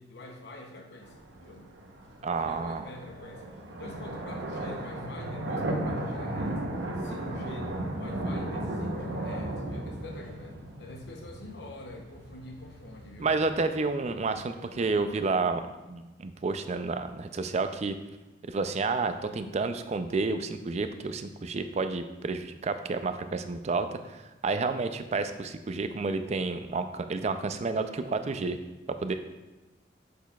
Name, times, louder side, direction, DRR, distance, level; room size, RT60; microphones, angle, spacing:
voice 1, 0.0-1.7 2.2-6.6 7.0-13.3, left 2 dB, 65° left, 2 dB, 0.7 m, -46 dB
sound 1, 1.0-14.9, right 1 dB, 90° right, 0.9 m, -36 dB
voice 2, 2.2-2.8 13.2-15.6 15.9-18.0 18.5-28.6 29.0-29.1, right 3 dB, 35° right, 9 dB, 0.4 m, -30 dB
8.0 x 6.5 x 2.3 m, 1.1 s
head